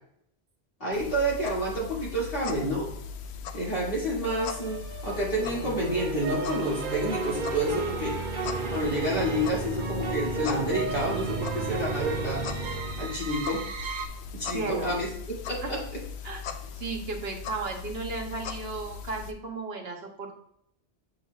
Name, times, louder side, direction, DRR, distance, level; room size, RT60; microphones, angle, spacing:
voice 1, 0.8-2.9 3.5-4.8 5.0-8.2 8.7-12.4 13.0-13.6 14.3-15.1 15.5-15.8, equal, 60° left, -5 dB, 2.5 m, -29 dB
sound 1, 0.9-19.3, left 6 dB, 80° left, 0.8 m, -39 dB
sound 2, 4.2-14.1, right 4 dB, 55° right, 0.8 m, -33 dB
voice 2, 14.5-15.0 15.6-15.7 16.2-16.4 16.8-20.3, right 3 dB, 70° right, 3 dB, 1.2 m, -34 dB
7.8 x 5.7 x 2.3 m, 0.71 s
omnidirectional pair, 1.1 m